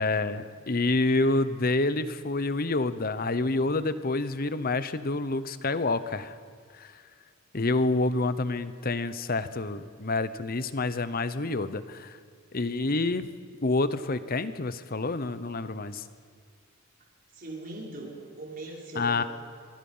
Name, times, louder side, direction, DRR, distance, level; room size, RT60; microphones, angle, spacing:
voice 1, 0.0-6.3 6.7-6.9 7.5-12.2 12.5-13.3 13.6-16.0 19.0-19.2, left 2 dB, 45° left, 13 dB, 0.9 m, -28 dB
voice 2, 17.3-19.3, right 2 dB, 40° right, -3 dB, 4.9 m, -40 dB
24.5 x 24.5 x 5.6 m, 2.1 s
head